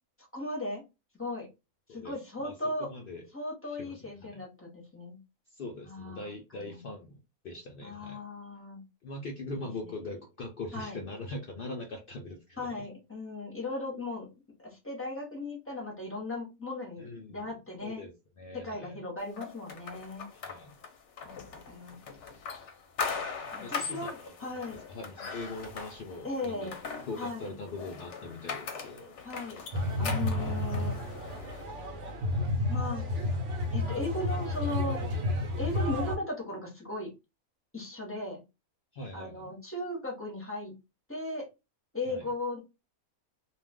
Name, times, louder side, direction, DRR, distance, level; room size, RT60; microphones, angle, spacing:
voice 1, 0.3-0.8 1.1-1.5 1.9-2.9 3.3-5.2 5.8-6.8 7.8-8.8 9.8-9.9 10.7-11.0 12.6-14.3 14.6-18.0 18.5-20.3 21.2-21.4 21.7-22.0 23.5-24.8 26.2-26.7 27.2-27.5 29.2-29.6 30.0-31.0 32.7-33.0 33.7-35.0 35.6-37.1 37.7-38.4 39.1-40.7 41.1-41.4 41.9-42.6, left 2 dB, 10° left, 0.8 m, -37 dB
voice 2, 1.9-2.5 2.8-3.3 3.6-4.4 5.5-8.2 9.0-12.7 17.0-17.5 17.8-19.0 20.3-20.7 23.6-26.7 27.1-29.1 38.9-39.5 42.1-42.3, left 2 dB, 75° left, 0.5 m, -42 dB
sound 1, 19.4-31.6, left 5 dB, 60° left, 0.9 m, -40 dB
sound 2, 29.7-36.2, left 1 dB, 60° right, 1.0 m, -31 dB
2.4 x 2.4 x 3.4 m
omnidirectional pair, 1.5 m